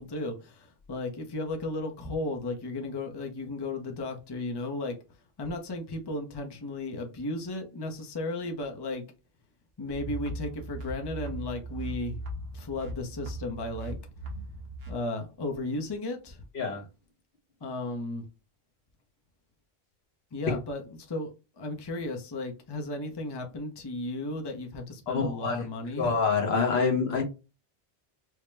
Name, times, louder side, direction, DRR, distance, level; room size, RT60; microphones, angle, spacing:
voice 1, 0.0-5.0 5.4-9.0 9.8-12.2 12.5-14.0 14.9-16.4 17.6-18.3 20.3-26.2, left 2 dB, 30° left, 0.6 m, -35 dB
sound 1, 9.9-14.9, right 2 dB, 70° right, 1.1 m, -39 dB
voice 2, 25.1-25.6 26.0-27.2, left 5 dB, 70° left, 1.3 m, -26 dB
4.8 x 2.1 x 3.2 m
omnidirectional pair, 1.1 m